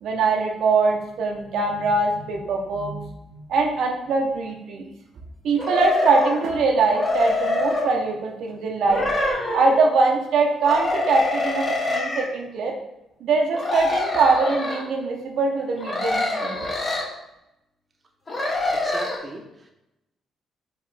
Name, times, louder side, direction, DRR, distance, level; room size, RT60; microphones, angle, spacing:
voice 1, 0.0-4.8 5.4-9.0 9.5-12.7 13.2-16.6, right 3 dB, 75° right, 1 dB, 0.7 m, -22 dB
sound 1, 5.6-6.4 6.9-7.9 8.9-9.8 10.6-12.3 13.5-14.8 15.8-17.1 18.3-19.2, left 2 dB, 30° left, 1.0 m, -25 dB
voice 2, 18.7-19.7, right 2 dB, 30° right, 1 dB, 0.7 m, -38 dB
4.7 x 3.0 x 3.3 m, 0.89 s
cardioid pair, 90°, 0 cm